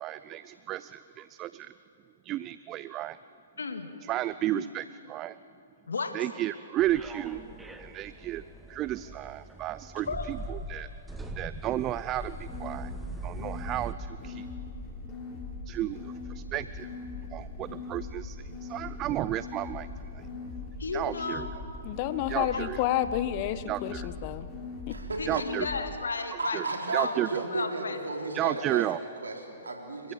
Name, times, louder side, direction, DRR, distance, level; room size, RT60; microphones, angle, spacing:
voice 1, 0.0-1.7 2.2-3.2 4.1-5.4 6.1-7.4 7.8-8.4 8.7-10.9 11.4-12.9 13.2-14.5 15.7-16.9 17.3-19.9 20.1-20.2 20.9-21.5 22.3-22.8 23.7-24.1 25.3-25.7 26.5-26.6 26.9-27.4 28.3-29.0, right 14 dB, 30° right, 16 dB, 0.4 m, -33 dB
voice 2, 3.6-3.9 4.5-4.7 5.9-6.1 9.9-10.3 20.8-21.6 22.4-22.6 25.2-26.6 26.9-27.2 27.5-28.0, left 4 dB, 75° left, 6 dB, 2.0 m, -34 dB
sound 1, 6.8-13.9, right 1 dB, 5° right, 1.2 m, -41 dB
sound 2, 12.1-25.8, left 3 dB, 20° left, 3.4 m, -40 dB
voice 3, 21.8-24.5 24.9-25.0, left 12 dB, 40° left, 14 dB, 0.9 m, -30 dB
voice 4, 24.9-25.4 26.4-30.1, right 3 dB, 80° right, 1 dB, 3.7 m, -34 dB
28.0 x 15.5 x 7.4 m, 2.8 s
figure-of-eight pair, 120°, 0 cm